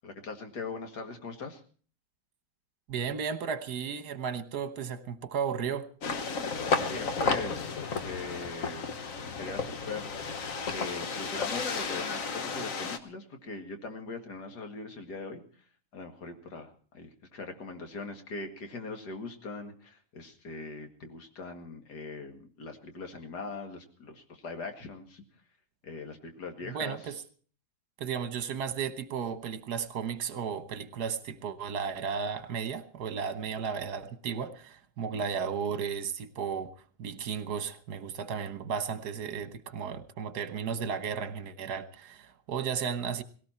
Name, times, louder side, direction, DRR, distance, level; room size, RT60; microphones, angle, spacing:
voice 1, 0.0-1.6 6.7-7.7 8.0-9.0 9.4-15.6 15.9-25.2 25.8-27.1 35.1-35.2, left 4 dB, 80° left, 2.5 m, -41 dB
voice 2, 2.9-5.9 26.7-27.2 28.0-36.7 37.0-43.2, right 6 dB, 75° right, 1.7 m, -34 dB
sound 1, 6.0-13.0, left 4 dB, 55° left, 1.5 m, -32 dB
18.5 x 17.0 x 4.3 m
omnidirectional pair, 1.7 m